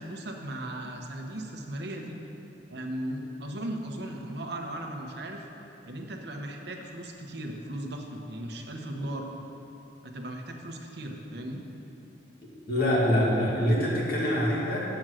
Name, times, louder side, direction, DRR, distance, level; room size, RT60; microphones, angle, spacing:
voice 1, 0.0-2.2 2.7-5.4 5.8-9.3 10.0-11.6, right 1 dB, 60° right, 2 dB, 0.9 m, -37 dB
voice 2, 12.7-15.0, equal, 55° left, -5 dB, 1.9 m, -25 dB
7.7 x 7.1 x 6.3 m, 2.9 s
head